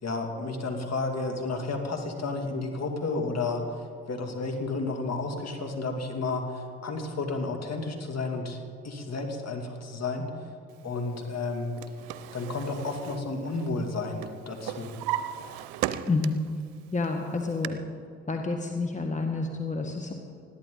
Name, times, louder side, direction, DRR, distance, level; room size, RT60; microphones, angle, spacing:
voice 1, 0.0-3.8 4.1-8.6 8.8-10.3 10.8-11.7 12.3-15.0, left 3 dB, 45° left, 3 dB, 2.8 m, -32 dB
Drawer open or close, 11.5-13.9 14.2-16.6 17.0-17.7, right 12 dB, 70° right, 0.7 m, -36 dB
voice 2, 16.1-16.4 16.9-17.8 18.3-20.1, left 3 dB, 20° left, 3 dB, 1.7 m, -29 dB
20.5 x 14.0 x 4.0 m, 2.4 s
hypercardioid pair, 45°, 37 cm